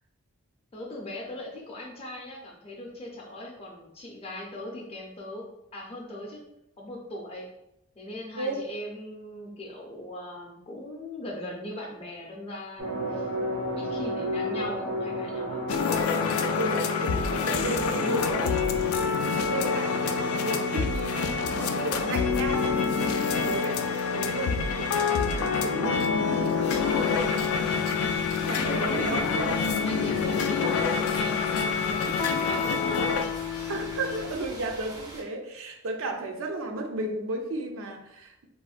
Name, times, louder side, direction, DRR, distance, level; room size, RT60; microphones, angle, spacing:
voice 1, 0.7-5.4 5.7-6.4 6.8-7.5 7.9-13.3 13.8-15.7 28.8-28.9 29.8-32.8 33.1-33.3, left 1 dB, 30° left, -1 dB, 0.5 m, -40 dB
sound 1, 12.8-26.9 27.2-27.3 27.6-27.7, equal, 90° right, 0.9 m, -35 dB
sound 2, 15.7-34.3, left 5 dB, 80° left, 0.3 m, -27 dB
voice 2, 16.6-18.8 19.3-23.8 24.1-26.7 27.9-28.1 28.4-29.2 33.7-38.4, right 1 dB, 70° right, 3 dB, 0.5 m, -34 dB
sound 3, 26.7-35.2, right 1 dB, 15° right, 0.5 m, -43 dB
3.5 x 2.1 x 2.4 m, 0.82 s
head